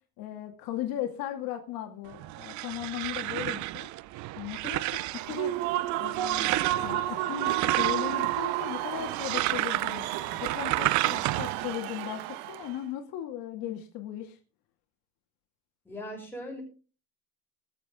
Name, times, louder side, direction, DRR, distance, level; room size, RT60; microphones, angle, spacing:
voice 1, 0.2-3.9 4.4-5.5 6.0-10.1 10.4-14.4, left 11 dB, 70° left, 4 dB, 2.1 m, -37 dB
sound 1, 2.1-11.7, right 18 dB, 55° right, 0.5 m, -32 dB
Human voice / Cheering / Applause, 5.1-12.8, right 14 dB, 75° right, 1.3 m, -31 dB
voice 2, 15.8-16.6, equal, 5° left, -1 dB, 6.3 m, -39 dB
21.5 x 7.4 x 3.6 m, 0.35 s
cardioid pair, 130°, 36 cm